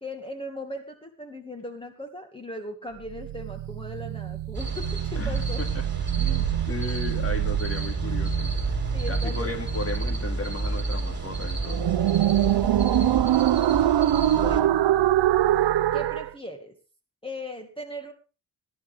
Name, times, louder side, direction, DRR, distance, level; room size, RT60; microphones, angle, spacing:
voice 1, 0.0-5.6 8.9-9.5 12.2-13.3 13.8-14.0 14.4-14.8 15.9-16.7 17.2-18.1, left 1 dB, 10° left, 4 dB, 2.1 m, -38 dB
sound 1, 3.0-16.3, right 13 dB, 65° right, 0.6 m, -25 dB
sound 2, 4.5-14.6, right 2 dB, 20° right, 3.9 m, -30 dB
voice 2, 5.1-5.8 6.1-8.5 9.1-11.8, left 2 dB, 30° left, 6 dB, 2.5 m, -35 dB
20.0 x 12.0 x 3.5 m, 0.33 s
cardioid pair, 95°, 46 cm